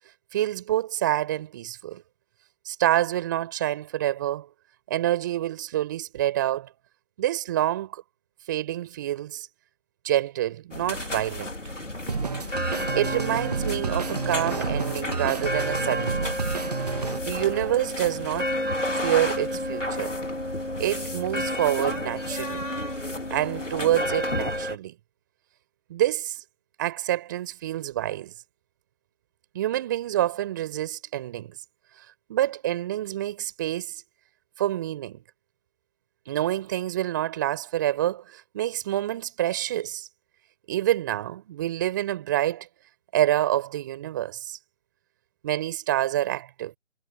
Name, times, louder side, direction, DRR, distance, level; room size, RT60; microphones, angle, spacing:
voice 1, 0.3-2.0 2.7-4.5 4.9-6.7 7.2-8.0 8.5-9.5 10.0-11.6 12.9-16.4 17.2-18.5 19.0-20.2 20.8-22.7 23.3-24.9 25.9-26.4 26.8-28.3 29.5-31.6 32.3-34.0 34.6-35.2 36.3-40.1 40.7-42.7 43.1-44.6 45.4-46.7, right 13 dB, 15° right, 5.2 m, -27 dB
sound 1, 10.7-24.8, left 1 dB, 90° left, 4.4 m, -30 dB
sound 2, 12.1-17.2, right 5 dB, 35° right, 1.6 m, -30 dB
figure-of-eight pair, 160°, 36 cm